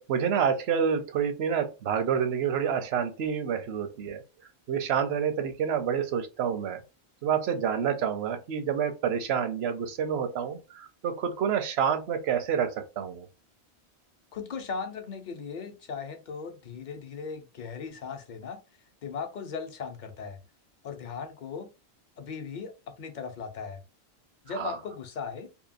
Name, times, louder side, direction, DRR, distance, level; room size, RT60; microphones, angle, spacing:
voice 1, 0.0-4.2 4.7-6.8 7.2-13.3 24.6-24.8, right 7 dB, 75° right, 0.9 m, -28 dB
voice 2, 14.3-18.6 19.0-20.4 20.8-21.7 22.2-23.8 24.4-25.5, left 5 dB, 55° left, 0.7 m, -38 dB
2.8 x 2.7 x 2.5 m
omnidirectional pair, 1.1 m